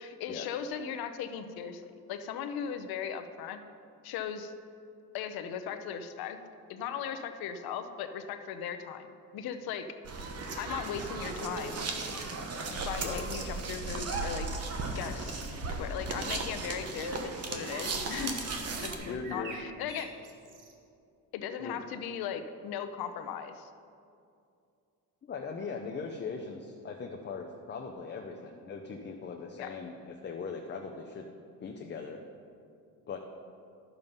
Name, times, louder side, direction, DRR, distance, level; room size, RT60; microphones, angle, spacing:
voice 1, 0.0-1.8 2.1-3.6 4.0-4.5 5.1-6.4 6.7-9.9 10.6-11.9 12.7-14.5 14.9-15.4 15.8-20.1 21.3-23.7 29.6-29.7, left 8 dB, 85° left, 8 dB, 0.8 m, -38 dB
sound 1, 10.0-18.9, right 3 dB, 40° right, 1.2 m, -36 dB
sound 2, 16.3-16.9 19.0-20.7, right 3 dB, 55° right, 1.4 m, -47 dB
voice 2, 19.0-19.6 21.6-21.8 25.3-31.3 31.6-32.2 33.1-33.2, left 5 dB, 30° left, 2 dB, 0.7 m, -39 dB
11.0 x 7.1 x 5.4 m, 2.5 s
cardioid pair, 130°, 36 cm